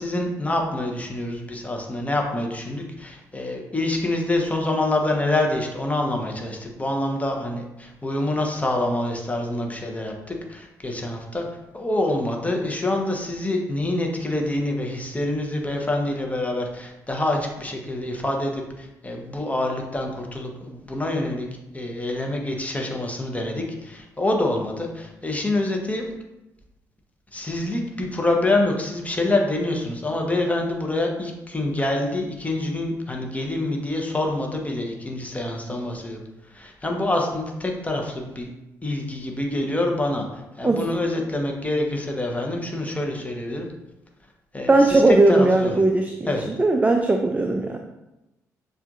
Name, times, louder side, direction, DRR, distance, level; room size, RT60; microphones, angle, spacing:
voice 1, 0.0-11.4 11.7-21.5 21.7-26.1 27.3-36.2 36.5-38.5 38.8-43.7 44.5-45.7 46.3-46.4, left 2 dB, 15° left, 1 dB, 1.0 m, -26 dB
voice 2, 44.7-46.3 46.6-47.8, right 2 dB, 15° right, 4 dB, 0.4 m, -18 dB
7.1 x 2.6 x 2.6 m, 0.96 s
figure-of-eight pair, 45°, 9 cm